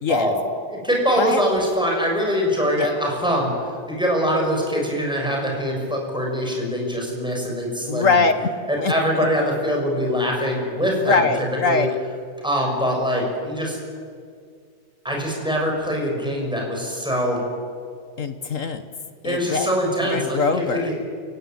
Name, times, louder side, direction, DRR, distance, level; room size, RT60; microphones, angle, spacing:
voice 1, 0.7-8.2 8.7-11.3 11.6-11.8 12.4-13.8 15.0-17.4 19.2-21.0, equal, ahead, -1 dB, 6.3 m, -23 dB
voice 2, 7.9-8.3 8.8-8.9 10.9-11.9 18.2-18.8 19.2-19.7 20.0-20.9, left 4 dB, 45° left, 9 dB, 1.4 m, -22 dB
29.0 x 17.0 x 9.3 m, 2.1 s
omnidirectional pair, 2.3 m